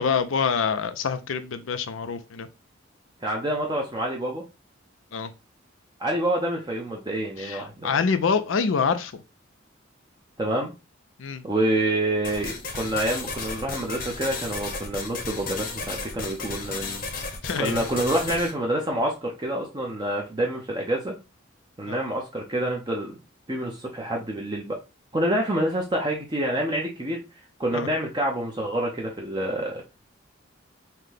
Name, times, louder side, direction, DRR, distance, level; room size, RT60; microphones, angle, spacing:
voice 1, 0.0-2.5 5.1-5.3 7.4-9.1 11.2-11.4 17.4-17.8 21.9-22.0 27.7-27.9, left 5 dB, 80° left, 0.5 m, -26 dB
voice 2, 3.2-4.4 6.0-7.9 10.4-10.7 11.4-17.0 17.6-21.2 21.8-23.2 23.5-24.8 25.1-27.2 27.6-29.8, right 1 dB, 20° right, 0.6 m, -27 dB
sound 1, 12.2-18.5, left 4 dB, 45° left, 0.8 m, -34 dB
5.7 x 2.2 x 3.3 m
head